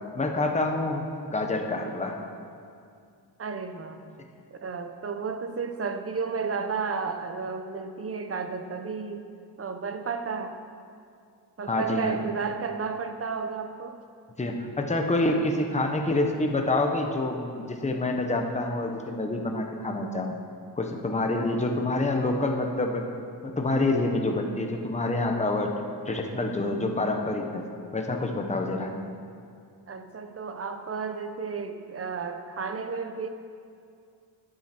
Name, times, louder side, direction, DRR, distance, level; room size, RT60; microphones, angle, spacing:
voice 1, 0.1-2.2 11.7-12.2 14.4-20.3 20.8-23.0 23.4-25.7 26.1-27.6 27.9-28.9, left 2 dB, 20° left, 3 dB, 1.1 m, -27 dB
voice 2, 3.4-4.0 4.5-9.3 9.6-10.6 11.6-14.0 29.9-33.3, right 5 dB, 35° right, 7 dB, 0.9 m, -32 dB
14.0 x 9.6 x 4.5 m, 2.3 s
wide cardioid pair, 130°, 39 cm